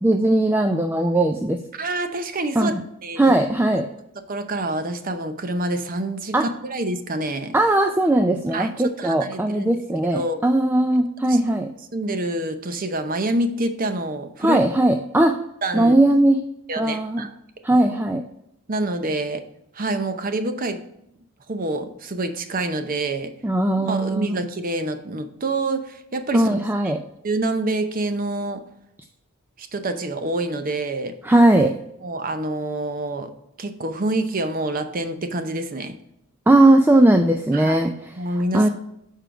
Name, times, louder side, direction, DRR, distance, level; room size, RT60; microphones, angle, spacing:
voice 1, 0.0-1.6 2.6-2.8 3.2-3.9 6.3-6.5 7.5-11.7 14.4-15.4 15.7-16.4 16.8-17.3 17.6-18.2 23.4-24.4 26.3-27.0 31.2-31.7 36.5-37.9 38.5-38.7, right 1 dB, 10° right, 5 dB, 0.3 m, -18 dB
voice 2, 1.7-2.7 3.0-3.3 3.7-3.8 4.3-7.6 8.5-9.7 10.0-10.4 11.3-11.4 11.9-14.6 15.6-15.9 16.7-17.3 18.7-19.4 19.7-20.8 21.5-23.3 23.8-26.6 26.8-26.9 27.2-28.7 29.6-31.2 32.0-33.3 33.6-36.0 37.5-37.9 38.2-38.7, right 2 dB, 40° right, 9 dB, 0.7 m, -27 dB
6.9 x 4.5 x 4.9 m, 0.80 s
head